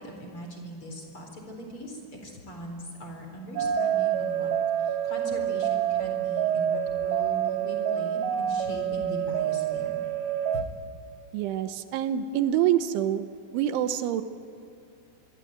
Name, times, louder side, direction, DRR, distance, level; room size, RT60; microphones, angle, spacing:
voice 1, 0.0-4.5 4.8-10.0 10.5-10.6, equal, 30° left, 3 dB, 4.6 m, -40 dB
sound 1, 3.6-10.6, right 9 dB, 65° right, 3.0 m, -27 dB
voice 2, 11.3-13.2 13.5-14.2, right 11 dB, 85° right, 10 dB, 3.4 m, -26 dB
25.5 x 23.0 x 9.1 m, 2.5 s
omnidirectional pair, 5.5 m